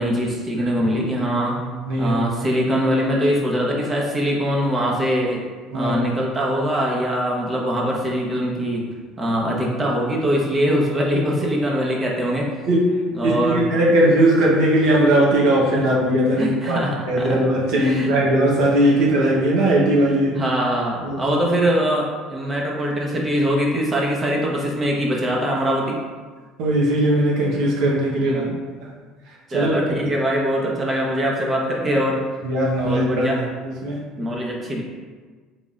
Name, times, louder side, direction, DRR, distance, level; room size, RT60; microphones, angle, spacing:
voice 1, 0.0-1.6 2.0-5.4 5.7-8.9 9.2-12.5 13.1-13.7 16.4-17.4 17.7-18.1 20.4-26.0 28.2-28.6 29.5-32.2 32.8-33.4 34.2-34.8, equal, 30° right, -2 dB, 1.0 m, -22 dB
voice 2, 1.6-2.5 5.7-5.9 12.7-20.4 21.0-21.4 26.6-28.4 28.8-28.9 29.3-29.8 32.4-34.0, right 1 dB, 70° right, -4 dB, 0.9 m, -19 dB
3.9 x 3.5 x 2.4 m, 1.5 s
hypercardioid pair, 70°, 0 cm